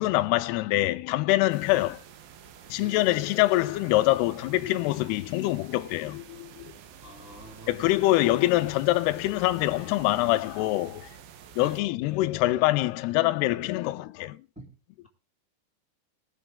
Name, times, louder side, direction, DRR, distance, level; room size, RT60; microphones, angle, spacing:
voice 1, 0.0-2.0 2.7-6.6 7.7-11.1 11.6-14.4, left 17 dB, 80° left, 2.4 m, -25 dB
sound 1, 1.5-11.8, right 8 dB, 70° right, 2.3 m, -49 dB
voice 2, 2.8-3.1 7.0-7.8 11.6-11.8 14.6-14.8, equal, ahead, 1.8 m, -46 dB
20.5 x 7.0 x 3.7 m
omnidirectional pair, 5.4 m